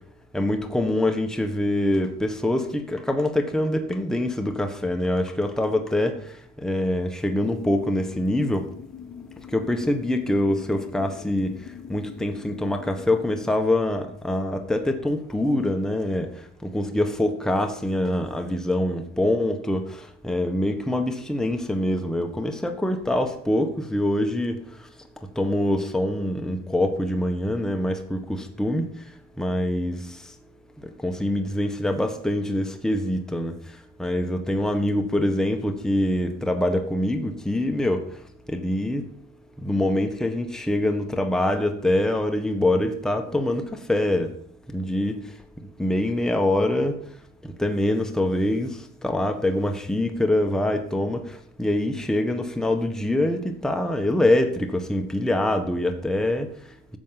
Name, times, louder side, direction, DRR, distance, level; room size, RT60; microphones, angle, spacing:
voice 1, 0.3-6.2 6.6-8.6 9.5-11.5 11.9-16.3 16.6-24.6 25.4-28.9 29.4-30.0 31.0-33.5 34.0-38.0 38.5-39.0 39.6-44.3 44.7-45.2 45.8-47.0 47.6-56.5, left 1 dB, ahead, 5 dB, 1.4 m, -24 dB
sound 1, 7.4-13.5, left 7 dB, 60° left, 3.9 m, -43 dB
12.0 x 7.5 x 5.8 m, 0.64 s
cardioid pair, 90°, 30 cm